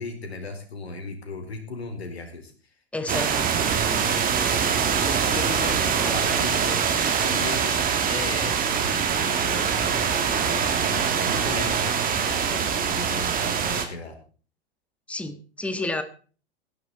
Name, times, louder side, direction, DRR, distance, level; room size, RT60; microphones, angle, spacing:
voice 1, 0.0-2.5 5.0-7.8 8.1-14.1, left 3 dB, 80° left, 5 dB, 4.5 m, -36 dB
voice 2, 2.9-3.5 15.1-16.0, left 2 dB, 5° left, 10 dB, 1.6 m, -30 dB
sound 1, 3.1-13.9, right 7 dB, 25° right, 2.7 m, -24 dB
17.0 x 11.0 x 4.2 m, 0.39 s
figure-of-eight pair, 100°, 31 cm